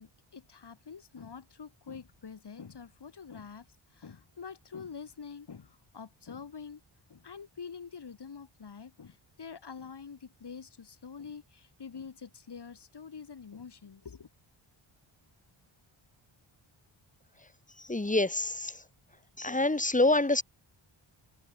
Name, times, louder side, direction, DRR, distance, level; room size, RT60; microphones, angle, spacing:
voice 1, 0.0-3.7 3.9-6.8 7.1-14.3, left 6 dB, 55° left, 4.3 m, -46 dB
voice 2, 17.8-18.8 19.4-20.4, left 2 dB, 15° left, 2.4 m, -26 dB
wide cardioid pair, 115°, 49 cm